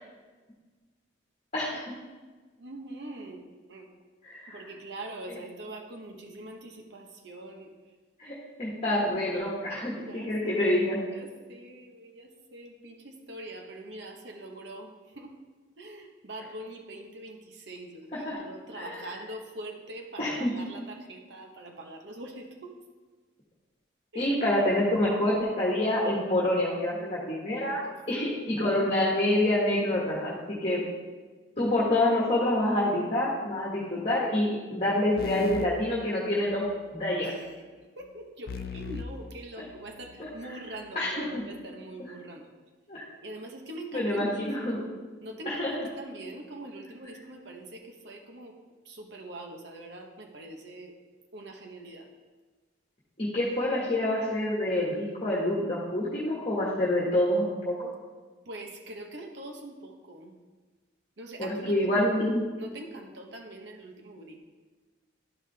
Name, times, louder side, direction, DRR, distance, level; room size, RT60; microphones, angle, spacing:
voice 1, 1.5-1.9 4.2-4.7 5.3-5.4 8.2-11.0 18.1-18.4 18.7-19.1 20.2-20.5 24.1-27.8 28.1-30.8 31.6-37.3 39.6-39.7 40.2-40.6 40.9-41.4 42.9-43.0 43.9-44.8 45.4-45.9 53.2-57.9 61.4-62.4, left 1 dB, 30° left, -6 dB, 1.5 m, -27 dB
voice 2, 2.6-3.4 3.7-3.9 4.5-7.7 10.0-10.3 11.1-14.9 15.2-15.3 15.8-22.7 24.1-24.3 27.8-28.4 37.2-37.3 38.0-42.4 43.2-44.9 45.2-48.5 48.9-50.9 51.3-52.1 58.5-60.3 61.2-62.0 62.6-64.4, right 1 dB, 65° right, 2 dB, 0.9 m, -43 dB
sound 1, 35.2-36.8 38.5-40.2, left 4 dB, 50° left, 0.4 m, -39 dB
12.0 x 5.0 x 3.3 m, 1.3 s
head